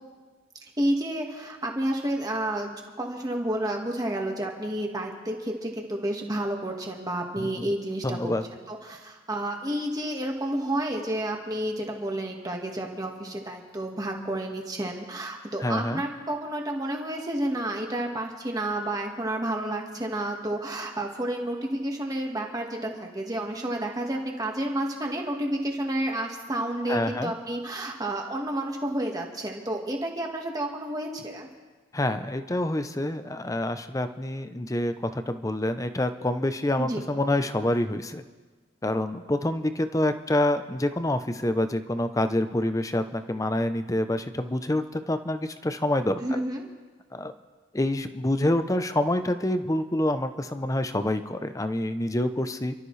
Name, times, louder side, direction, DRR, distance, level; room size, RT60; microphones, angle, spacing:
voice 1, 0.8-31.5 36.8-37.0 46.2-46.7, right 1 dB, 20° right, 1 dB, 1.7 m, -30 dB
voice 2, 7.4-7.7 8.0-8.4 15.6-16.0 26.9-27.3 31.9-38.2 38.8-46.4 47.1-47.3 47.7-52.7, left 1 dB, 15° left, 9 dB, 0.6 m, -27 dB
29.0 x 13.0 x 3.3 m, 1.3 s
head